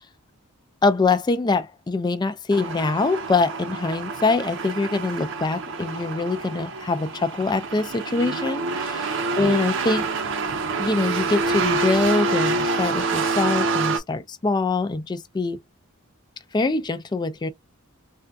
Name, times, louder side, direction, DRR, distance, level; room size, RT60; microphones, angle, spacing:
voice 1, 0.8-10.1 10.8-15.6 16.5-17.5, left 3 dB, 20° left, 0.3 m, -24 dB
sound 1, 2.5-14.0, right 3 dB, 60° right, 0.6 m, -27 dB
3.4 x 2.2 x 2.6 m
head